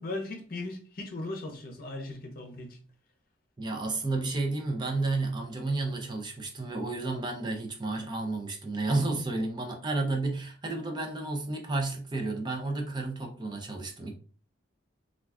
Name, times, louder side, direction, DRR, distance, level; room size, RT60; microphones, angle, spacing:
voice 1, 0.0-2.8, left 2 dB, 50° left, 0.6 m, -38 dB
voice 2, 3.6-14.1, right 2 dB, 25° right, 0.4 m, -31 dB
2.4 x 2.2 x 3.4 m
head